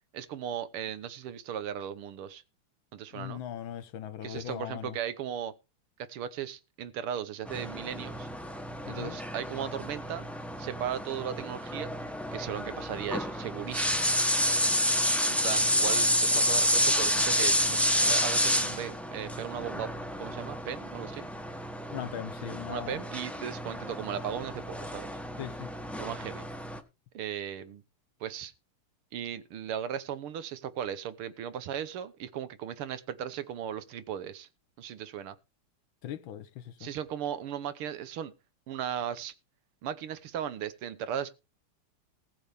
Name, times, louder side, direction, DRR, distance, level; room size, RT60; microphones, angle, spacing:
voice 1, 0.1-2.4 2.9-3.4 4.2-5.5 6.0-8.3 8.9-10.3 10.6-11.9 12.3-14.1 15.3-21.3 22.7-25.1 26.0-26.4 27.1-27.8 28.2-28.5 29.1-34.5 34.8-35.4 36.8-38.3 38.7-39.3 39.8-41.3, right 9 dB, 80° right, 1.9 m, -37 dB
voice 2, 3.1-5.0 8.9-9.2 21.9-23.0 25.4-25.7 36.0-36.9, left 11 dB, 70° left, 1.6 m, -39 dB
sound 1, 7.5-26.8, equal, ahead, 0.4 m, -30 dB
19.5 x 7.1 x 3.5 m
omnidirectional pair, 2.4 m